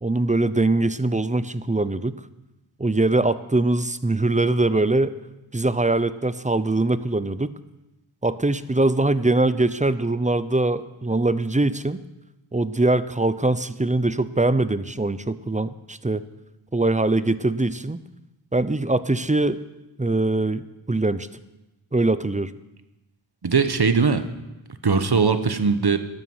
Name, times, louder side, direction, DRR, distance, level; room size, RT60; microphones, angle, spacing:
voice 1, 0.0-2.2 2.8-5.1 5.5-7.5 8.2-12.0 12.5-16.2 16.7-18.0 18.5-19.6 20.0-21.3 21.9-22.5, right 2 dB, 15° right, 14 dB, 0.6 m, -22 dB
voice 2, 23.4-24.2 24.8-26.0, right 5 dB, 50° right, 10 dB, 1.1 m, -20 dB
12.5 x 11.0 x 6.2 m, 0.99 s
wide cardioid pair, 45°, 48 cm